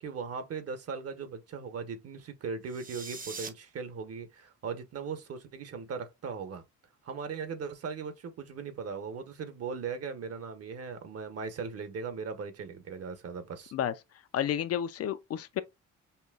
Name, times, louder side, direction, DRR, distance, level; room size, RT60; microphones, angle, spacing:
voice 1, 0.0-6.6 7.0-13.7, right 5 dB, 55° right, 1.0 m, -38 dB
sound 1, 2.6-3.5, right 4 dB, 30° right, 0.7 m, -41 dB
voice 2, 14.3-15.6, left 10 dB, 55° left, 0.4 m, -31 dB
5.5 x 2.2 x 2.3 m
cardioid pair, 90°, 30 cm